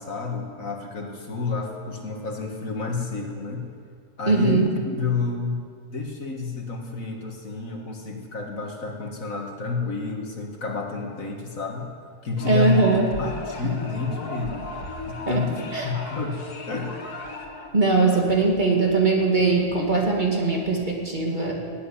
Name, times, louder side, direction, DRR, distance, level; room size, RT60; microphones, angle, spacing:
voice 1, 0.0-3.7 4.2-4.6 4.9-5.6 5.9-11.9 12.2-12.8 13.2-14.7 15.1-16.4 16.7-17.0, left 4 dB, 60° left, 1 dB, 2.1 m, -29 dB
voice 2, 4.3-4.7 12.4-13.1 13.6-13.7 15.3-15.9 17.7-21.5, right 3 dB, 30° right, -1 dB, 2.3 m, -21 dB
sound 1, 12.4-17.7, left 2 dB, 80° left, 2.3 m, -36 dB
17.0 x 8.3 x 10.0 m, 2.2 s
omnidirectional pair, 1.7 m